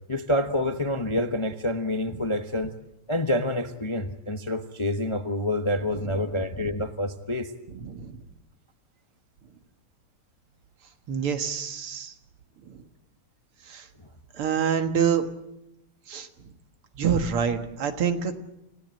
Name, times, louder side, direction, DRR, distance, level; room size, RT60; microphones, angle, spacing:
voice 1, 0.1-2.7 3.1-7.5, left 1 dB, 25° left, 6 dB, 0.6 m, -27 dB
voice 2, 7.8-8.2 11.1-12.1 12.6-12.8 13.7-13.9 14.3-15.3 16.1-16.3 17.0-18.3, right 7 dB, 85° right, 7 dB, 2.5 m, -26 dB
27.5 x 16.5 x 7.7 m, 0.86 s
omnidirectional pair, 2.4 m